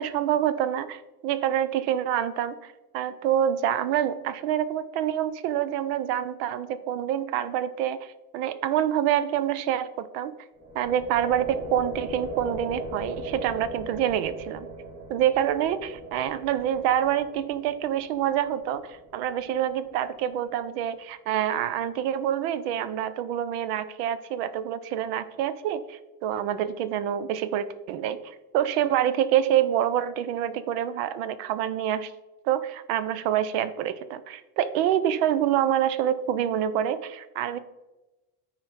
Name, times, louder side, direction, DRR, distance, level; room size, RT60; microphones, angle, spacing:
voice 1, 0.0-10.3 10.7-14.7 15.1-32.1 32.4-37.6, right 10 dB, 45° right, 15 dB, 0.4 m, -27 dB
sound 1, 10.5-20.4, right 1 dB, 10° right, 0.8 m, -39 dB
9.6 x 4.5 x 4.0 m, 1.1 s
supercardioid pair, 160°, 45 cm